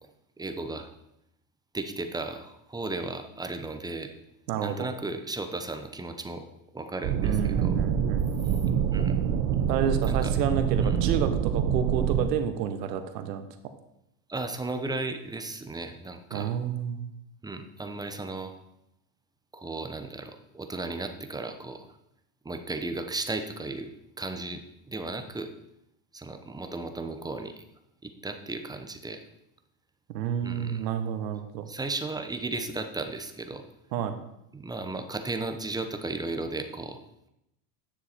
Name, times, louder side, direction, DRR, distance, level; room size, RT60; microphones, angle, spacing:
voice 1, 0.4-0.9 1.7-4.1 4.6-6.5 6.7-7.7 8.9-9.2 10.1-10.3 10.8-11.0 14.3-16.5 17.4-18.5 19.5-21.9 22.4-23.9 24.2-25.5 26.1-27.5 28.0-29.2 30.4-30.9 31.7-33.6 34.5-37.0, right 2 dB, 10° right, 7 dB, 0.8 m, -35 dB
voice 2, 4.5-4.9 7.2-8.3 9.7-13.5 16.3-17.0 30.1-31.7 33.9-34.2, right 8 dB, 85° right, 9 dB, 1.1 m, -30 dB
sound 1, 7.0-12.3, right 8 dB, 60° right, 1.0 m, -26 dB
9.8 x 6.8 x 4.4 m, 0.83 s
supercardioid pair, 110°, 48 cm